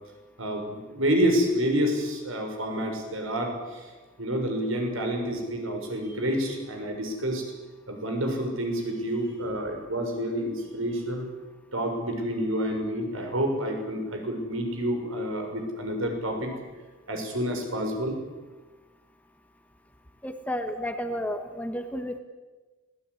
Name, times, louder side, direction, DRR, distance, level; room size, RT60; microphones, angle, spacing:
voice 1, 0.4-3.9 4.2-7.4 7.9-11.3 11.7-16.5 17.1-18.2, equal, 75° right, 3 dB, 6.6 m, -28 dB
voice 2, 20.2-22.2, equal, 5° left, 7 dB, 1.4 m, -32 dB
26.0 x 17.5 x 9.9 m, 1.3 s
head